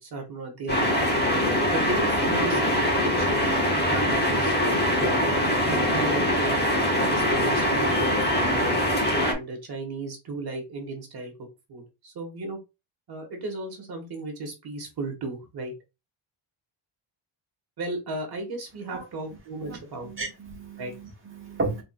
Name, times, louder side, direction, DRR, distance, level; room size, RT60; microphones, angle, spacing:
voice 1, 0.0-3.5 3.9-6.6 7.0-8.8 9.2-12.6 13.1-15.7 17.8-20.3 20.8-20.9, right 2 dB, 50° right, 1.3 m, -35 dB
sound 1, 0.7-9.3, left 1 dB, 20° left, 1.2 m, -23 dB
voice 2, 20.0-21.8, right 3 dB, 25° right, 1.3 m, -33 dB
4.3 x 3.8 x 2.2 m
wide cardioid pair, 165°, 48 cm